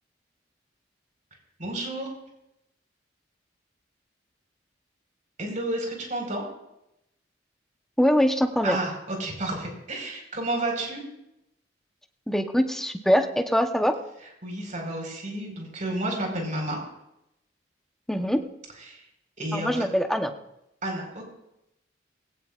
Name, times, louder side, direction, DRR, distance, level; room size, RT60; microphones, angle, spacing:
voice 1, 1.6-2.1 5.4-6.4 8.6-11.0 14.4-16.8 18.8-19.0 19.4-19.8 20.8-21.2, right 1 dB, 45° right, 1 dB, 4.7 m, -31 dB
voice 2, 8.0-8.8 12.3-13.9 18.1-18.4 19.5-20.3, equal, ahead, 5 dB, 0.9 m, -23 dB
20.0 x 17.0 x 2.5 m, 0.86 s
head